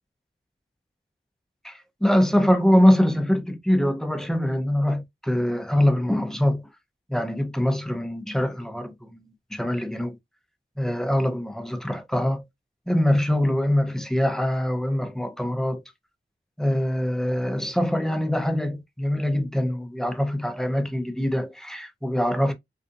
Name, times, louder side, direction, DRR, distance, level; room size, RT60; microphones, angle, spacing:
voice 1, 1.6-6.6 7.1-10.1 10.8-12.4 12.9-15.8 16.6-22.5, equal, ahead, 0.8 m, -23 dB
4.1 x 2.6 x 2.6 m
wide cardioid pair, 55°, 21 cm